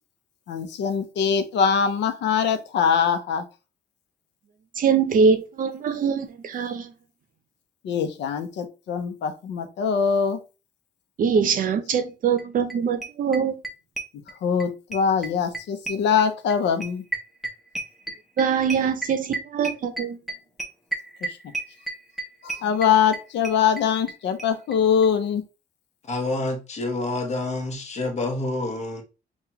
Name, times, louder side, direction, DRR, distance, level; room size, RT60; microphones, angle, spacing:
voice 1, 0.5-3.5 7.8-10.4 14.4-17.0 21.2-21.4 22.4-25.4, left 7 dB, 85° left, 0.7 m, -23 dB
voice 2, 4.8-6.9 11.2-13.6 18.4-20.2, right 6 dB, 50° right, 0.6 m, -23 dB
sound 1, 12.4-12.5 12.7-12.8 13.0-14.7 14.9-24.1 24.4-24.5 24.7-24.8 25.0-25.1, right 2 dB, ahead, 0.6 m, -32 dB
voice 3, 26.0-29.0, left 2 dB, 40° left, 1.0 m, -28 dB
5.7 x 2.3 x 2.9 m
cardioid pair, 165°, 18 cm